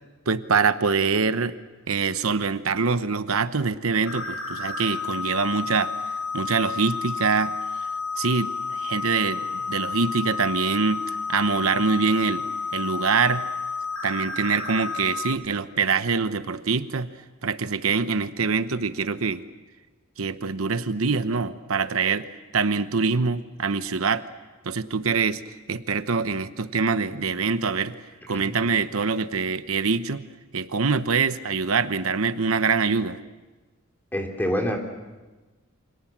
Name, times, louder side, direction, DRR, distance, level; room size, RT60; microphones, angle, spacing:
voice 1, 0.3-1.5 1.9-5.9 6.3-7.5 8.2-12.4 12.7-13.5 14.0-17.1 17.4-19.4 20.2-22.3 22.5-24.2 24.6-25.4 25.7-27.9 28.3-30.2 30.5-33.2, right 5 dB, 75° right, 12 dB, 0.9 m, -24 dB
sound 1, 4.0-15.4, left 4 dB, 75° left, 5.3 m, -31 dB
voice 2, 34.1-34.8, equal, 10° left, 2 dB, 3.1 m, -27 dB
29.5 x 26.0 x 7.4 m, 1.2 s
head